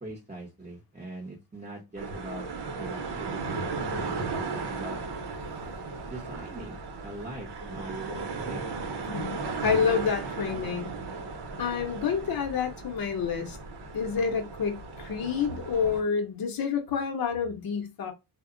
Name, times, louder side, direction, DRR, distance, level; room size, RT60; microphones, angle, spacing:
voice 1, 0.0-2.4 2.8-5.0 6.0-8.7, right 2 dB, 20° right, 0.8 m, -42 dB
sound 1, 2.0-16.0, right 4 dB, 90° right, 0.8 m, -36 dB
voice 2, 9.1-10.9 11.6-13.6 13.9-18.1, left 6 dB, 60° left, 0.7 m, -28 dB
2.1 x 2.0 x 3.6 m
wide cardioid pair, 130°, 40 cm